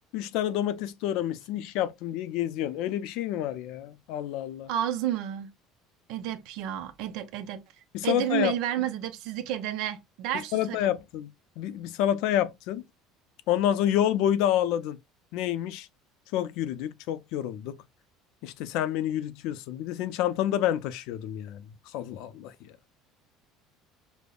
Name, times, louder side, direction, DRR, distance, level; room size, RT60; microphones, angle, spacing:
voice 1, 0.1-4.7 7.9-8.5 10.5-11.3 11.6-12.8 13.5-15.0 15.3-15.9 16.3-17.8 18.4-21.6 21.9-22.5, left 11 dB, 65° left, 0.4 m, -28 dB
voice 2, 4.7-5.5 6.1-7.6 8.0-10.9, right 10 dB, 65° right, 0.6 m, -31 dB
5.1 x 2.1 x 2.3 m
cardioid pair, 160°, 0 cm